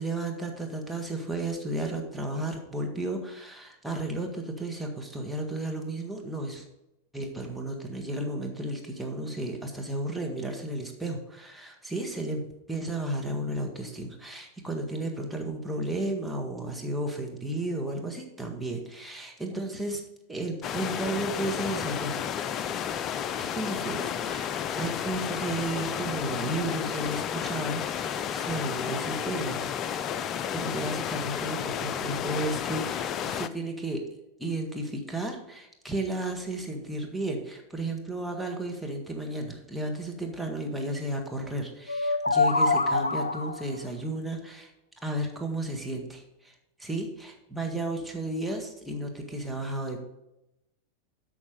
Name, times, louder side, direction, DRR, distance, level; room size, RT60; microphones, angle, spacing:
voice 1, 0.0-6.6 7.1-12.4 12.7-20.0 20.3-22.2 23.4-29.6 30.5-34.0 34.4-44.7 45.0-50.0, right 1 dB, 5° right, 1 dB, 1.7 m, -33 dB
sound 1, 20.6-33.5, left 9 dB, 35° left, 0.5 m, -32 dB
sound 2, 41.9-43.7, left 3 dB, 85° left, 0.5 m, -25 dB
8.5 x 6.2 x 5.2 m, 0.89 s
figure-of-eight pair, 90°, 0 cm